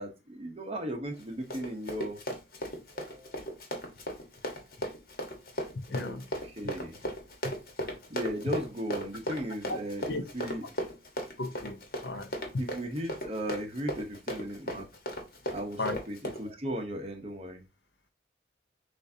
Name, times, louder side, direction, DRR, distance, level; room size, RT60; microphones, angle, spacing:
voice 1, 0.0-2.2 2.9-3.5 5.9-7.0 8.1-10.7 12.6-14.9 15.5-17.6, equal, 35° right, 1.0 m, -37 dB
Run, 1.1-16.5, equal, 55° left, 1.3 m, -37 dB
voice 2, 5.9-6.2 9.7-9.8 10.1-10.2 11.4-12.3 15.8-16.0, left 2 dB, 75° left, 0.8 m, -34 dB
6.5 x 2.6 x 2.7 m
head